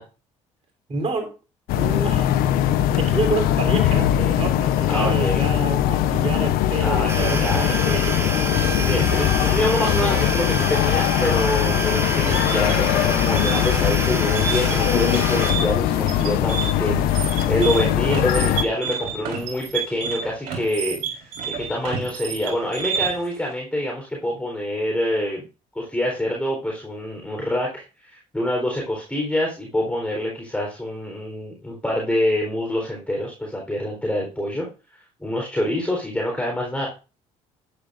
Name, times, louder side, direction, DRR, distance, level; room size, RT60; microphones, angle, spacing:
voice 1, 0.9-1.3 1.8-2.3 3.0-9.3, right 3 dB, 45° right, 3.6 m, -28 dB
sound 1, 1.7-18.6, left 12 dB, 75° left, 0.8 m, -21 dB
voice 2, 4.8-5.7 6.8-7.8 8.7-25.4 25.7-34.7 35.2-36.9, left 1 dB, 10° left, 4.0 m, -26 dB
sound 2, 7.1-15.5, right 2 dB, 15° right, 3.3 m, -28 dB
sound 3, 12.3-23.3, right 7 dB, 65° right, 4.1 m, -30 dB
11.5 x 9.9 x 2.6 m
supercardioid pair, 70°, 15 cm